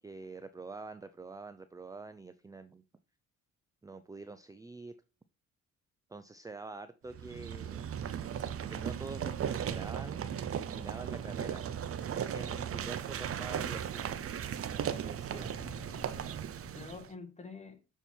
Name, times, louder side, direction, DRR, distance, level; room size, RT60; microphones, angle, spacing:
voice 1, 0.0-2.8 3.8-4.9 6.1-7.8 8.7-10.3 10.6-11.9 12.3-14.0 14.7-15.5, right 3 dB, 10° right, 0.4 m, -46 dB
sound 1, 7.1-17.1, right 8 dB, 50° right, 0.7 m, -37 dB
voice 2, 15.3-16.3 16.6-17.8, left 4 dB, 20° left, 1.8 m, -48 dB
6.8 x 4.5 x 4.3 m
cardioid pair, 90°, 30 cm